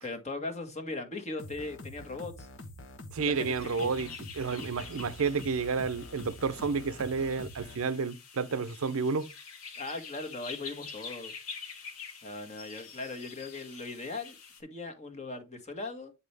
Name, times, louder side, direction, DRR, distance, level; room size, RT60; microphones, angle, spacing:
voice 1, 0.0-2.5 3.2-3.9 9.8-11.3 12.2-16.1, left 3 dB, 30° left, 1.4 m, -39 dB
sound 1, 1.4-7.8, left 1 dB, 60° left, 1.2 m, -46 dB
voice 2, 3.1-9.3, right 5 dB, 75° right, 0.6 m, -31 dB
sound 2, 3.3-14.6, left 5 dB, 85° left, 2.0 m, -47 dB
9.7 x 4.2 x 3.3 m
head